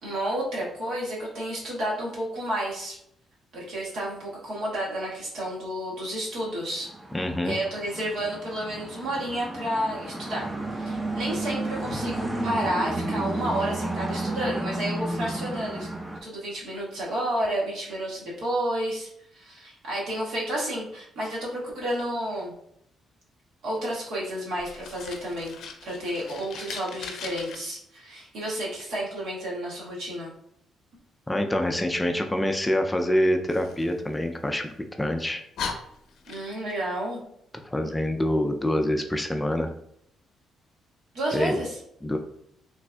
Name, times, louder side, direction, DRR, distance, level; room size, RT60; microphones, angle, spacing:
voice 1, 0.0-3.0 3.5-6.9 7.4-15.9 16.2-22.5 23.6-25.6 25.8-30.3 36.3-37.2 41.1-41.8, right 1 dB, 75° right, -5 dB, 1.4 m, -31 dB
sound 1, 6.6-16.2, right 2 dB, 20° right, 0.7 m, -32 dB
voice 2, 7.1-7.5 31.3-34.7 35.0-35.4 37.7-39.7 41.3-41.6 42.0-42.2, left 1 dB, 10° left, 5 dB, 0.3 m, -25 dB
Fire, 24.6-27.6 33.5-34.7 35.2-35.3 35.6-36.8, left 6 dB, 75° left, 0.5 m, -39 dB
3.4 x 3.3 x 2.2 m, 0.72 s
cardioid pair, 90°, 0 cm